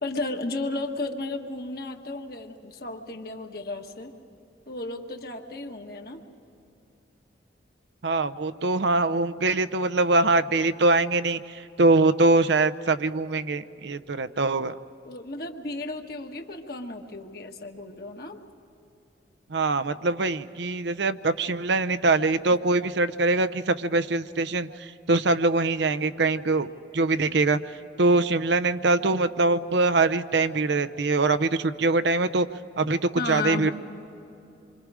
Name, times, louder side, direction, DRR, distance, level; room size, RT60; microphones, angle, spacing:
voice 1, 0.0-4.1 4.7-6.2 15.0-18.4 33.2-33.7, left 2 dB, 55° left, 3 dB, 1.6 m, -33 dB
voice 2, 8.0-14.7 19.5-26.7 26.9-27.6 28.0-32.5 32.8-33.7, right 3 dB, 75° right, 12 dB, 0.7 m, -23 dB
27.5 x 25.0 x 5.0 m, 2.8 s
head